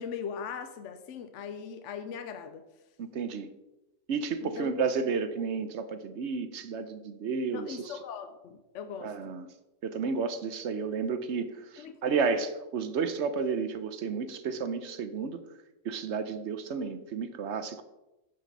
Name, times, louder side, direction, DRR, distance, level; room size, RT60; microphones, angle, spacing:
voice 1, 0.0-2.6 4.4-4.7 7.5-9.4 11.8-12.1, left 7 dB, 65° left, 9 dB, 0.9 m, -40 dB
voice 2, 3.0-3.5 4.1-7.9 9.0-9.5 9.8-15.4 15.8-17.8, right 5 dB, 60° right, 10 dB, 0.9 m, -32 dB
8.5 x 5.8 x 5.3 m, 1.0 s
omnidirectional pair, 1.5 m